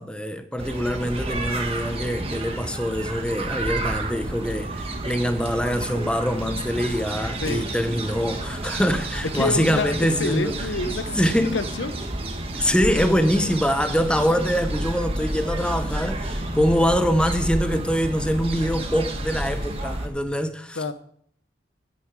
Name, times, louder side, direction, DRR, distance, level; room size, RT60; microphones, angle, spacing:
voice 1, 0.0-10.6 11.1-11.6 12.5-20.8, equal, 5° left, 0.7 m, -24 dB
sound 1, 0.6-20.1, right 1 dB, 30° right, 1.5 m, -30 dB
voice 2, 7.4-7.9 9.3-11.9 20.8-20.9, left 3 dB, 85° left, 0.9 m, -28 dB
9.9 x 9.5 x 4.7 m
head